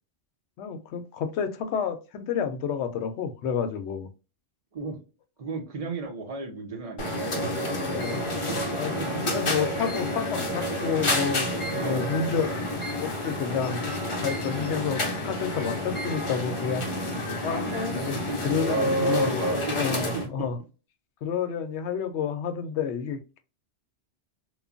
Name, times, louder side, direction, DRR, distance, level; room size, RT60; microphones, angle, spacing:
voice 1, 0.6-4.1 7.2-7.4 7.7-8.2 8.8-8.9 9.2-12.5 13.0-13.8 14.2-16.9 17.4-17.7 17.9-18.2 18.4-19.4 19.7-20.6 21.2-23.4, left 6 dB, 75° left, 0.8 m, -30 dB
voice 2, 5.4-8.0 8.5-8.6 9.0-9.4 11.7-12.1 14.7-15.0 18.0-18.4 18.7-20.5, right 4 dB, 35° right, 0.7 m, -35 dB
sound 1, 7.0-20.3, left 1 dB, 35° left, 0.5 m, -29 dB
3.0 x 2.2 x 2.4 m
omnidirectional pair, 1.2 m